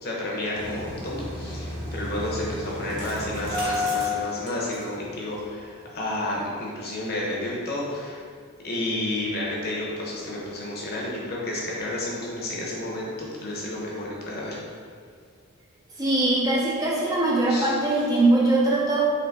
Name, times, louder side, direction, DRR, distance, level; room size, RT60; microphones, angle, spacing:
voice 1, 0.0-8.2 8.6-14.6 17.5-17.7, left 1 dB, 45° left, -4 dB, 0.8 m, -31 dB
Engine starting, 0.5-5.1 5.4-5.5 5.8-6.0, left 2 dB, 50° right, 1.0 m, -31 dB
voice 2, 16.0-19.1, right 2 dB, 15° right, -4 dB, 0.4 m, -21 dB
3.9 x 3.2 x 3.5 m, 2.1 s
head